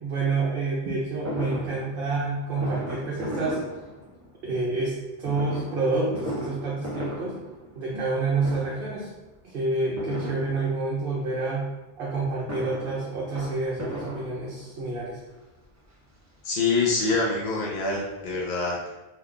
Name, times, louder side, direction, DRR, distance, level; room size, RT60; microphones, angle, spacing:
voice 1, 0.0-3.6 4.4-7.4 7.7-9.1 9.4-11.7 12.0-15.2, right 3 dB, 65° right, -4 dB, 0.8 m, -28 dB
Fireworks, 1.3-4.4 5.2-8.1 8.4-9.0 10.0-11.1 12.2-14.9 15.6-15.7 16.0-16.1 16.4-17.7 18.0-18.1 18.3-18.4, equal, 25° right, 0.4 m, -36 dB
voice 2, 16.4-18.9, left 3 dB, 50° left, -4 dB, 0.6 m, -25 dB
2.9 x 2.3 x 3.6 m, 1.1 s
omnidirectional pair, 1.1 m